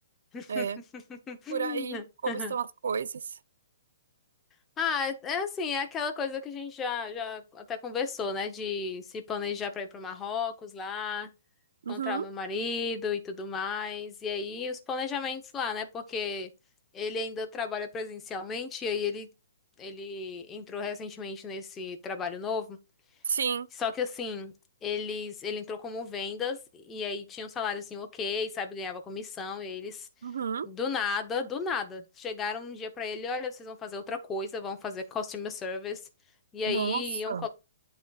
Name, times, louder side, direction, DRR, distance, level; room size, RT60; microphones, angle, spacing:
voice 1, 0.3-0.7 0.9-2.6 4.8-11.3 11.9-16.5 16.9-19.3 19.8-22.8 23.8-24.5 24.8-30.1 30.6-36.0 36.5-37.5, left 5 dB, 10° left, 0.7 m, -34 dB
voice 2, 1.5-3.1 11.9-12.3 23.3-23.7 30.2-30.7 36.7-37.5, right 6 dB, 70° right, 0.4 m, -31 dB
12.0 x 4.0 x 2.3 m
hypercardioid pair, 170°, 0 cm